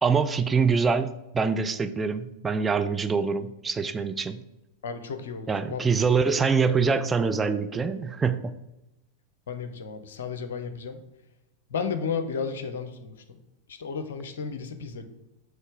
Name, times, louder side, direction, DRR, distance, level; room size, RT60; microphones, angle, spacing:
voice 1, 0.0-4.4 5.5-8.5, right 5 dB, 15° right, 9 dB, 0.3 m, -25 dB
voice 2, 4.8-6.3 9.5-11.0 11.7-13.4 13.7-15.0, left 5 dB, 60° left, 8 dB, 0.7 m, -33 dB
6.4 x 3.2 x 4.9 m, 0.93 s
figure-of-eight pair, 90°, 0 cm